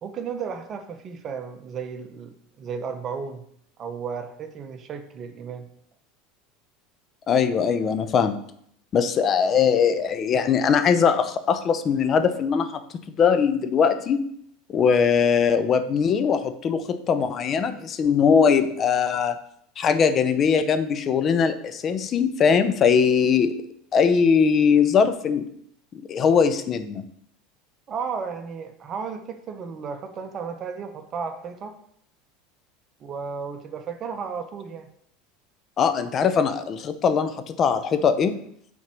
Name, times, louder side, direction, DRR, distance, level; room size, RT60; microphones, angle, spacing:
voice 1, 0.0-3.4 3.8-5.7 27.9-31.8 33.0-34.9, right 6 dB, 40° right, 8 dB, 0.9 m, -34 dB
voice 2, 7.3-8.4 8.9-12.8 13.2-14.2 14.7-19.4 19.8-23.5 23.9-25.4 25.9-27.1 35.8-38.4, left 6 dB, 40° left, 10 dB, 0.7 m, -21 dB
5.8 x 4.4 x 6.2 m, 0.67 s
hypercardioid pair, 90°, 0 cm